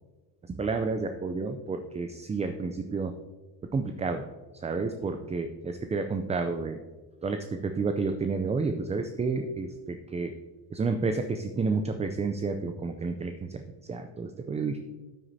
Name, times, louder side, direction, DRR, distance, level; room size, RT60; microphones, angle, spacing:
voice 1, 0.5-3.2 3.7-4.3 4.6-6.8 7.2-10.3 10.7-14.8, right 4 dB, 15° right, 7 dB, 0.3 m, -30 dB
9.2 x 8.9 x 2.7 m, 1.3 s
supercardioid pair, 90°, 47 cm